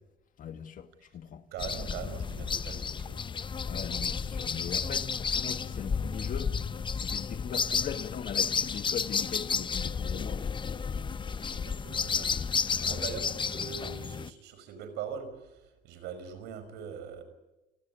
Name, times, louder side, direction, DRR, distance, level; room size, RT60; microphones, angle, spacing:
voice 1, 0.4-1.4 3.7-6.5 6.9-10.5 12.7-13.1, left 9 dB, 50° left, 2.2 m, -40 dB
voice 2, 1.5-3.2 11.4-12.3 12.8-15.5 15.8-17.2, right 7 dB, 85° right, 5.6 m, -41 dB
sound 1, 1.6-14.3, left 6 dB, 30° left, 0.9 m, -32 dB
29.0 x 19.0 x 9.5 m
cardioid pair, 110°, 17 cm